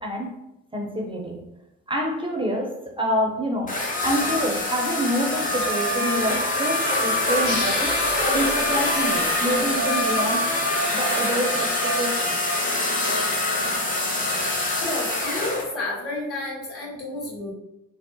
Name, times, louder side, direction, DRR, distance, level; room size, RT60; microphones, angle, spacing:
voice 1, 0.0-0.4 0.7-1.4 1.9-3.7 4.0-10.4 10.9-12.2, equal, 15° right, 0 dB, 0.5 m, -27 dB
sound 1, 3.7-15.6, left 1 dB, 25° left, 0.7 m, -24 dB
sound 2, 7.4-10.6, left 2 dB, 80° left, 0.9 m, -36 dB
voice 2, 14.8-17.5, left 2 dB, 50° left, -4 dB, 1.3 m, -31 dB
3.5 x 2.0 x 2.6 m, 0.89 s
cardioid pair, 90°, 30 cm